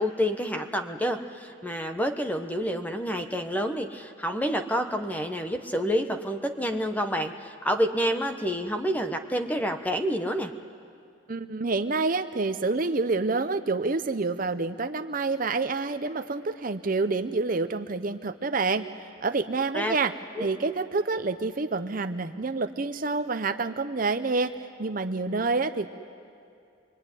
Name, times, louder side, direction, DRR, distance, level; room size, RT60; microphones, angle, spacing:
voice 1, 0.0-10.5 19.7-20.0 20.3-20.5, equal, 10° left, 7 dB, 1.0 m, -28 dB
voice 2, 11.3-20.1 20.4-25.9, right 3 dB, 40° right, 10 dB, 0.7 m, -28 dB
25.0 x 23.5 x 9.9 m, 2.4 s
head